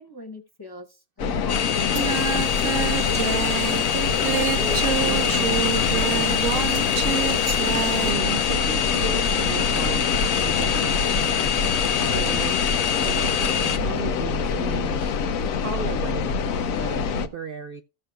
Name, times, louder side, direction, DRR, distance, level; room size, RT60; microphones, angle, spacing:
voice 1, 0.0-2.1, left 2 dB, 20° left, 0.7 m, -43 dB
sound 1, 1.2-17.3, left 6 dB, 80° left, 1.1 m, -26 dB
sound 2, 1.5-13.8, left 7 dB, 55° left, 0.4 m, -25 dB
Singing, 1.9-8.1, right 9 dB, 75° right, 1.3 m, -28 dB
voice 2, 3.9-6.5 8.0-10.1 10.4-11.5 12.0-12.6 13.0-17.8, right 8 dB, 60° right, 0.6 m, -35 dB
16.0 x 6.4 x 2.3 m
omnidirectional pair, 1.4 m